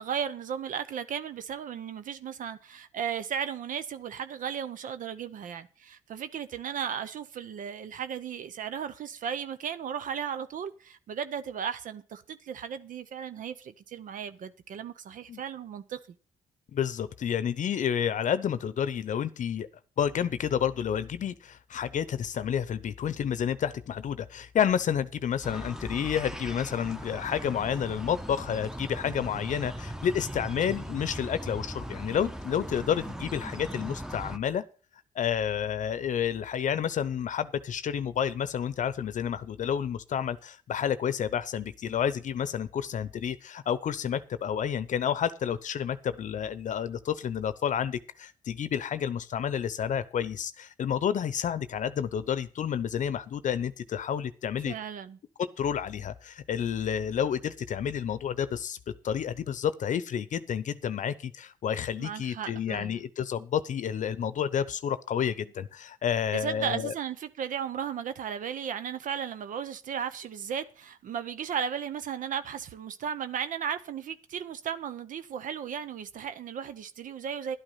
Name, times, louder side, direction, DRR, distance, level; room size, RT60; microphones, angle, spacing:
voice 1, 0.0-16.0 54.6-55.2 62.0-62.9 66.3-77.6, right 8 dB, 65° right, 0.8 m, -35 dB
voice 2, 16.7-19.7 20.0-34.6 35.1-54.8 55.6-58.8 59.0-66.9, left 8 dB, 60° left, 0.7 m, -30 dB
sound 1, 25.4-34.4, right 1 dB, 5° right, 1.0 m, -39 dB
11.5 x 8.9 x 5.6 m
supercardioid pair, 60°, 15 cm